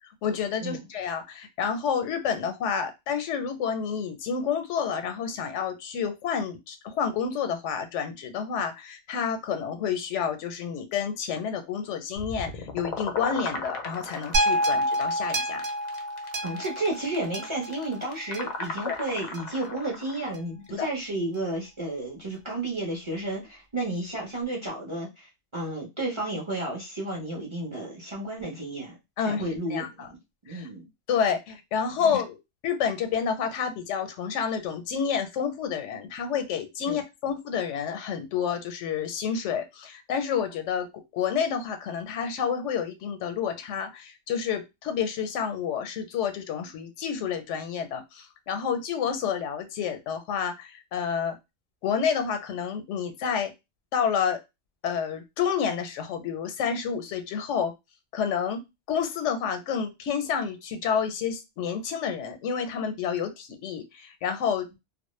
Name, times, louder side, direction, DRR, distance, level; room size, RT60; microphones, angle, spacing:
voice 1, 0.2-15.6 18.9-19.0 20.8-20.9 29.2-29.4 29.7-30.1 30.5-30.7 31.1-32.4 32.6-40.9 41.1-51.4 51.8-53.5 53.9-54.4 54.8-57.7 58.1-58.6 58.9-64.8, left 7 dB, 85° left, 7 dB, 0.9 m, -29 dB
sound 1, 12.2-20.3, left 3 dB, 60° left, 0.5 m, -37 dB
sound 2, 14.3-18.7 19.3-19.4, right 1 dB, 65° right, 0.8 m, -28 dB
voice 2, 16.4-29.0 29.2-30.2 30.4-30.9 36.9-37.0, right 2 dB, 35° right, -3 dB, 0.6 m, -32 dB
2.1 x 2.0 x 3.0 m, 0.23 s
omnidirectional pair, 1.2 m